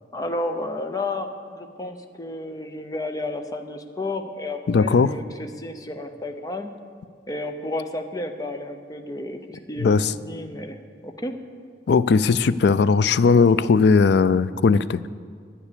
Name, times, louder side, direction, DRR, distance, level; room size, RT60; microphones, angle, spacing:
voice 1, 0.1-6.7 7.3-11.4, left 2 dB, 20° left, 6 dB, 0.7 m, -32 dB
voice 2, 4.7-5.1 9.8-10.1 11.9-15.0, left 5 dB, 65° left, 16 dB, 0.4 m, -18 dB
9.9 x 9.7 x 6.8 m, 2.1 s
head